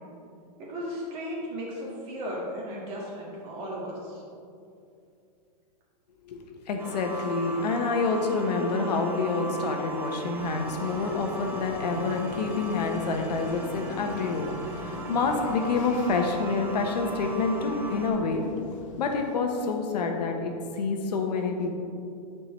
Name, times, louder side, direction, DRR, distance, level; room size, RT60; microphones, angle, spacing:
voice 1, 0.6-4.2, equal, 25° right, -4 dB, 1.6 m, -35 dB
voice 2, 6.3-18.4 19.0-21.8, left 4 dB, 75° left, 3 dB, 1.0 m, -28 dB
sound 1, 6.8-18.1, right 2 dB, 10° right, 0.5 m, -38 dB
sound 2, 10.4-19.1, left 3 dB, 50° left, 0.7 m, -42 dB
9.9 x 4.6 x 3.1 m, 2.5 s
hypercardioid pair, 160°, 21 cm